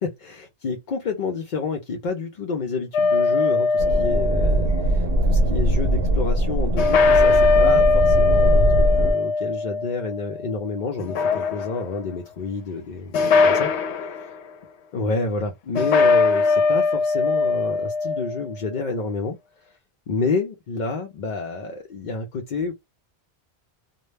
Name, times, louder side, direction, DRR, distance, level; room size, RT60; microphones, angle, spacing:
voice 1, 0.0-14.1 14.9-19.7 20.1-22.7, left 4 dB, 55° left, 0.5 m, -29 dB
sound 1, 2.9-5.0 6.8-10.5 11.0-12.0 13.1-14.3 15.7-18.5, left 4 dB, 80° left, 0.8 m, -20 dB
sound 2, 3.8-9.1, right 1 dB, 70° right, 0.8 m, -21 dB
2.2 x 2.1 x 3.1 m
omnidirectional pair, 1.1 m